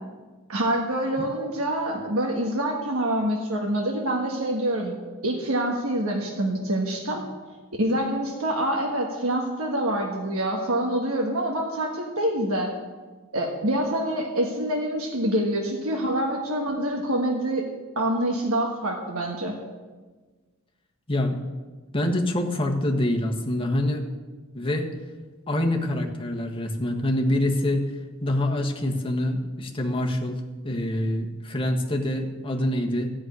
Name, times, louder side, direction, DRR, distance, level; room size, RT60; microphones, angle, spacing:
voice 1, 0.5-5.0 5.2-7.2 7.8-12.8 13.3-17.7 17.9-19.6, right 1 dB, 80° right, 0 dB, 1.5 m, -26 dB
voice 2, 21.9-24.0 24.5-24.9 25.5-27.9 28.2-33.1, left 1 dB, 25° left, 1 dB, 1.5 m, -25 dB
13.5 x 6.4 x 9.6 m, 1.3 s
head